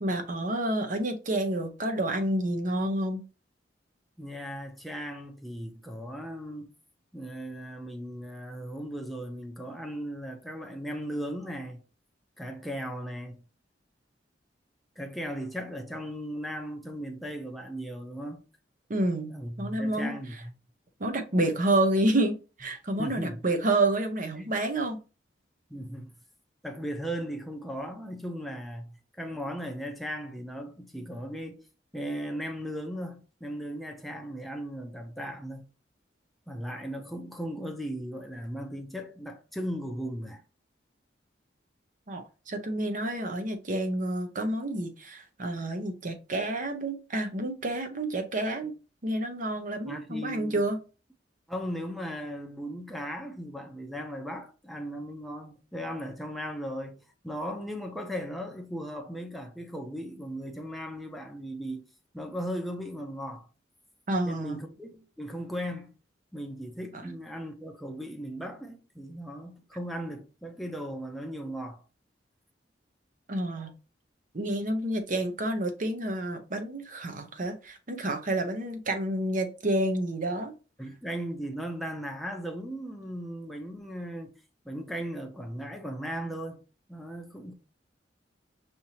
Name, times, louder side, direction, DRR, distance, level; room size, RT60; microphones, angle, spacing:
voice 1, 0.0-3.2 18.9-20.1 21.0-25.0 42.1-48.7 49.0-50.8 64.1-64.6 66.9-67.0 73.3-73.7 74.3-80.5, right 1 dB, 50° right, 0.9 m, -29 dB
voice 2, 4.2-6.7 7.1-11.8 12.4-13.4 15.0-18.4 19.3-20.5 23.0-23.4 25.7-26.1 26.6-31.7 31.9-35.7 36.5-40.4 49.9-50.6 51.5-61.9 62.1-63.5 64.3-65.9 66.3-71.8 80.8-84.3 84.6-86.6 86.9-87.5, equal, ahead, 0.7 m, -37 dB
5.4 x 2.8 x 3.0 m
head